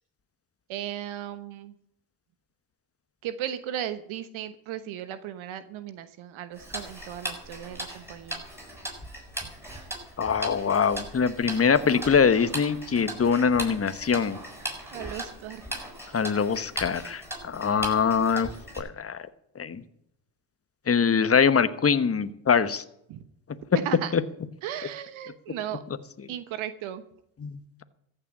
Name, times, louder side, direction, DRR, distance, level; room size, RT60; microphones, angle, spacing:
voice 1, 0.7-1.7 3.2-8.5 14.9-15.6 23.1-23.2 23.8-24.1 24.6-25.8 26.3-27.0, right 10 dB, 70° right, 12 dB, 1.2 m, -36 dB
Tick-tock, 6.6-18.8, right 1 dB, 5° right, 7.1 m, -38 dB
voice 2, 10.2-14.4 16.1-18.5 18.8-19.2 19.6-19.8 20.9-22.8 24.1-24.2 27.4-27.6, left 6 dB, 30° left, 12 dB, 1.2 m, -23 dB
14.5 x 6.8 x 8.6 m, 0.75 s
supercardioid pair, 65°, 50 cm